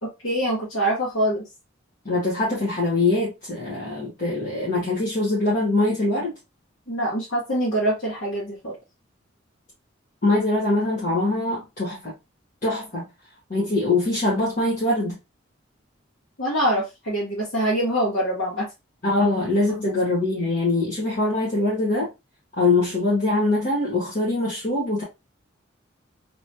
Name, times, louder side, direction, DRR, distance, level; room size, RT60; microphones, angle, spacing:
voice 1, 0.0-1.5 6.9-8.7 16.4-18.7 19.7-19.9, right 1 dB, 75° left, 1.5 m, -24 dB
voice 2, 2.0-6.3 10.2-12.1 12.6-13.1 13.5-15.2 19.0-22.1 22.6-25.0, left 2 dB, 40° left, 1.3 m, -23 dB
3.1 x 3.0 x 2.7 m
head